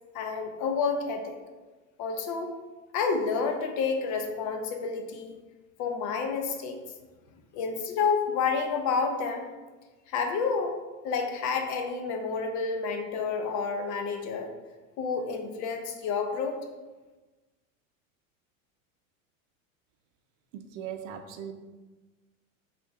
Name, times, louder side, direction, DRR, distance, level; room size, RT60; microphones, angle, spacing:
voice 1, 0.1-1.4 2.0-2.5 2.9-5.4 5.8-6.8 7.5-9.5 10.1-10.7 11.0-14.5 15.0-16.6, left 5 dB, 45° left, 4 dB, 0.6 m, -29 dB
voice 2, 20.5-21.5, right 9 dB, 70° right, 5 dB, 0.6 m, -39 dB
3.7 x 2.4 x 4.4 m, 1.2 s
supercardioid pair, 110°, 41 cm